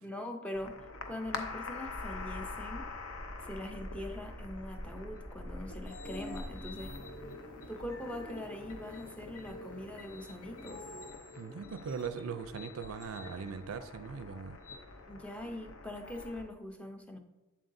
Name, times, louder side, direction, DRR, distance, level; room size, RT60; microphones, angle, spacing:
voice 1, 0.0-2.9 3.4-7.0 7.7-10.8 15.1-17.2, left 1 dB, 5° left, 4 dB, 0.5 m, -42 dB
sound 1, 0.5-16.4, left 3 dB, 75° left, 0.7 m, -46 dB
sound 2, 1.8-6.9, equal, 55° left, 1.8 m, -46 dB
sound 3, 6.0-11.1, equal, 40° left, 0.7 m, -50 dB
voice 2, 11.4-14.6, right 6 dB, 75° right, 11 dB, 0.4 m, -40 dB
7.6 x 7.6 x 2.6 m, 1.1 s
head